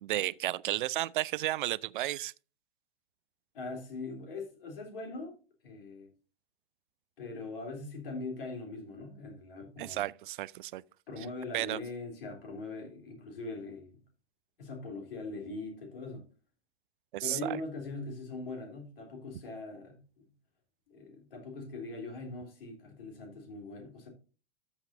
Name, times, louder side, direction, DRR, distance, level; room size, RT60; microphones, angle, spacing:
voice 1, 0.0-2.3 9.8-10.8 11.5-11.8 17.1-17.6, right 15 dB, 55° right, 0.5 m, -33 dB
voice 2, 3.5-5.4 5.6-6.1 7.2-10.0 11.1-14.0 14.6-16.3 17.2-20.2 20.9-24.1, left 3 dB, 65° left, 3.5 m, -41 dB
13.0 x 7.4 x 2.6 m
figure-of-eight pair, 95°, 30 cm